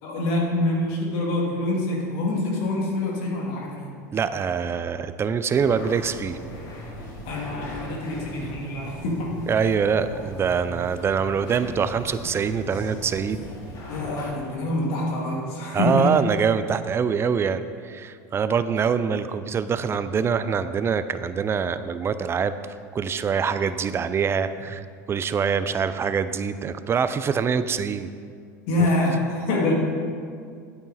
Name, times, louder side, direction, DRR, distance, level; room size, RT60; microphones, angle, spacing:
voice 1, 0.0-4.0 7.3-9.4 13.9-16.2 28.7-29.7, left 2 dB, 65° left, -2 dB, 2.2 m, -25 dB
voice 2, 4.1-6.4 9.5-13.4 15.7-22.5 22.9-28.1 28.8-28.9, right 6 dB, 25° right, 12 dB, 0.5 m, -24 dB
sound 1, 5.5-14.3, equal, 45° left, 2.5 m, -38 dB
8.9 x 8.6 x 4.1 m, 2.2 s
hypercardioid pair, 95°, 9 cm